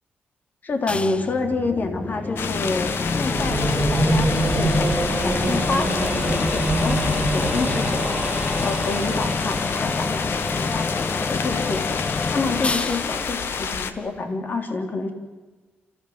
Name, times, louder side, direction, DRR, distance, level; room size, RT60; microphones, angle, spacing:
voice 1, 0.6-8.2 8.6-11.9 12.3-15.1, left 3 dB, 45° left, 5 dB, 3.5 m, -28 dB
sound 1, 0.9-14.4, left 3 dB, 30° left, 0.8 m, -28 dB
sound 2, 2.4-13.9, left 6 dB, 70° left, 1.5 m, -29 dB
sound 3, 3.0-9.9, right 2 dB, 20° right, 3.0 m, -25 dB
28.0 x 15.5 x 8.1 m, 1.3 s
cardioid pair, 100°, 4 cm